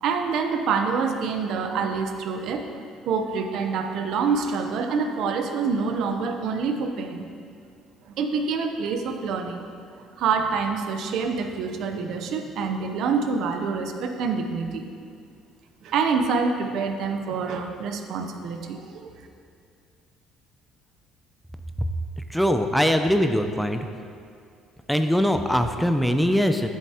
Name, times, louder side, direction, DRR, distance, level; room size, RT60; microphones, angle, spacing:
voice 1, 0.0-2.6 3.1-7.3 8.1-9.6 9.9-14.9 15.8-19.1, right 5 dB, 60° right, 5 dB, 0.7 m, -26 dB
voice 2, 22.3-23.9 24.9-26.7, equal, ahead, 6 dB, 0.3 m, -22 dB
11.5 x 7.2 x 2.9 m, 2.3 s
cardioid pair, 140°, 0 cm